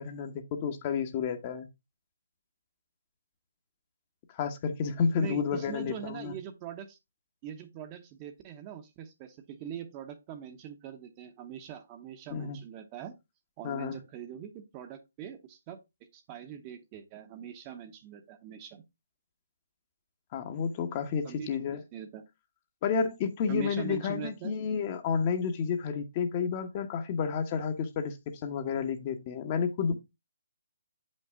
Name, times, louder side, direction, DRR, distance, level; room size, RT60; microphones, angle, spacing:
voice 1, 0.0-1.7 4.3-6.4 12.3-12.6 13.6-14.0 20.3-21.8 22.8-30.1, left 6 dB, 30° left, 1.1 m, -31 dB
voice 2, 5.2-7.0 7.4-13.2 13.6-15.8 16.1-18.8 21.2-21.6 21.9-22.2 23.5-24.5, right 9 dB, 25° right, 1.0 m, -42 dB
7.8 x 5.4 x 3.6 m
figure-of-eight pair, 150°, 0 cm